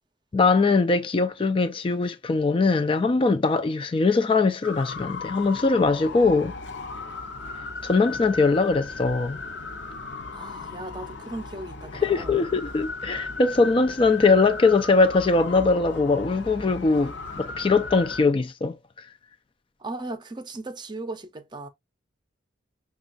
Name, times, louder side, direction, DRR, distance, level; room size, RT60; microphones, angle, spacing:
voice 1, 0.3-6.6 7.8-9.4 12.0-18.8, left 3 dB, 30° left, 0.3 m, -21 dB
sound 1, 4.6-18.2, left 3 dB, 70° left, 0.8 m, -37 dB
voice 2, 10.3-12.5 19.8-21.7, right 2 dB, 25° right, 0.5 m, -37 dB
6.1 x 2.3 x 2.4 m
head